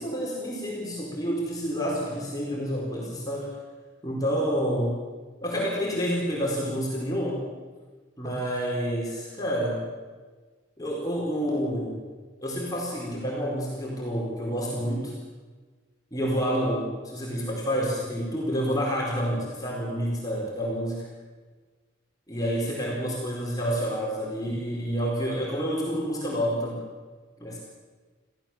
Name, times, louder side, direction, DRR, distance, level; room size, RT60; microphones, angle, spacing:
voice 1, 0.0-3.5 4.0-5.0 5.4-7.5 8.2-9.9 10.8-12.0 12.4-15.1 16.1-21.1 22.3-26.8 27.4-27.6, equal, 20° left, -4 dB, 4.6 m, -28 dB
26.0 x 15.5 x 7.4 m, 1.4 s
head